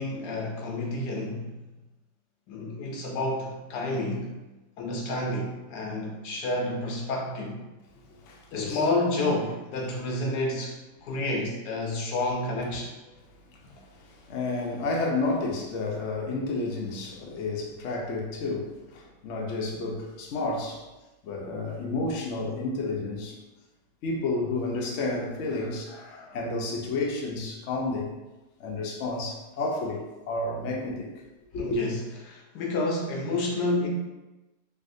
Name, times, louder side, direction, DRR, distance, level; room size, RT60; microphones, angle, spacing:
voice 1, 0.0-1.6 2.5-4.4 4.8-7.6 8.5-13.0 25.6-26.4 31.6-33.9, left 2 dB, 80° left, 0 dB, 1.2 m, -30 dB
voice 2, 8.2-8.9 14.0-20.8 21.2-23.4 24.0-25.9 26.3-28.1 28.6-31.1 31.5-31.8, left 2 dB, 65° left, -1 dB, 0.8 m, -31 dB
3.3 x 2.6 x 2.6 m, 1.1 s
omnidirectional pair, 1.7 m